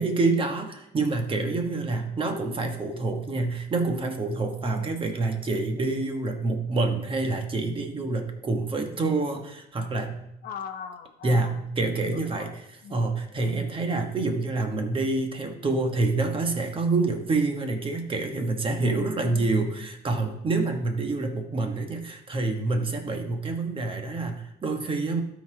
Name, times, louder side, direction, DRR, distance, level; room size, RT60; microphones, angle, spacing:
voice 1, 0.0-10.1 11.2-12.5 12.9-25.2, right 3 dB, 30° right, 5 dB, 1.2 m, -27 dB
voice 2, 4.6-5.0 10.4-11.6 12.0-13.1 13.5-13.8 18.8-19.6, left 7 dB, 60° left, 6 dB, 0.9 m, -40 dB
12.0 x 4.1 x 4.8 m, 0.82 s
cardioid pair, 110°, 17 cm